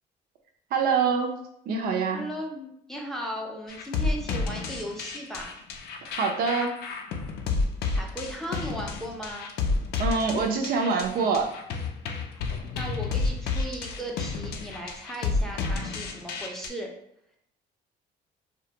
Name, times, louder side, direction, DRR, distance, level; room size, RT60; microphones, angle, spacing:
voice 1, 0.7-1.3 1.7-2.2 6.1-6.7 10.0-11.5, right 5 dB, 60° right, 3 dB, 0.4 m, -25 dB
voice 2, 2.1-5.5 7.9-9.5 12.4-16.9, equal, ahead, -1 dB, 0.5 m, -37 dB
sound 1, 3.7-16.7, left 4 dB, 70° left, 0.4 m, -30 dB
2.3 x 2.1 x 2.8 m, 0.75 s
cardioid pair, 110°, 17 cm